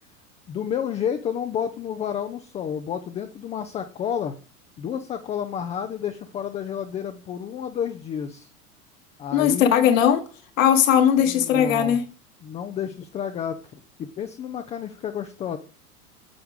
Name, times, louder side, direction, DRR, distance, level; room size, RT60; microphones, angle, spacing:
voice 1, 0.5-4.3 4.8-8.5 9.2-9.9 11.2-12.0 12.4-13.6 14.0-15.6, left 8 dB, 15° left, 0.5 m, -30 dB
voice 2, 9.3-10.2 10.6-12.0, left 9 dB, 60° left, 1.6 m, -18 dB
8.6 x 8.0 x 3.6 m
figure-of-eight pair, 90°, 45 cm